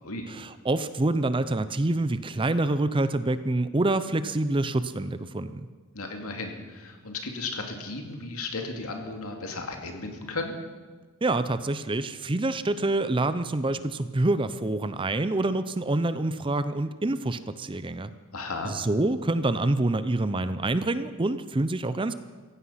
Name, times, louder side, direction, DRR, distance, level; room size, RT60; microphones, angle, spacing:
voice 1, 0.3-5.7 11.2-18.1 18.6-22.1, right 2 dB, 25° right, 13 dB, 0.6 m, -26 dB
voice 2, 5.9-10.6 18.3-18.7, left 3 dB, 75° left, 3 dB, 2.4 m, -35 dB
16.0 x 15.5 x 5.7 m, 1.4 s
head